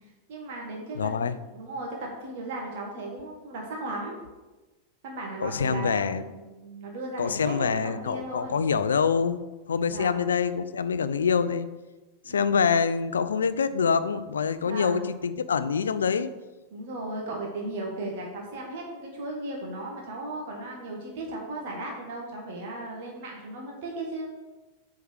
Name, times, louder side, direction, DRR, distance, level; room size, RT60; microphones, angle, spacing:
voice 1, 0.3-4.2 5.0-8.6 9.9-10.3 12.2-12.5 14.6-15.1 16.7-24.3, right 2 dB, 50° right, -1 dB, 1.7 m, -36 dB
voice 2, 0.9-1.4 5.4-6.2 7.2-9.4 9.7-11.7 12.3-16.3, left 6 dB, 70° left, 13 dB, 0.4 m, -25 dB
7.8 x 4.7 x 6.5 m, 1.1 s
figure-of-eight pair, 90°, 0 cm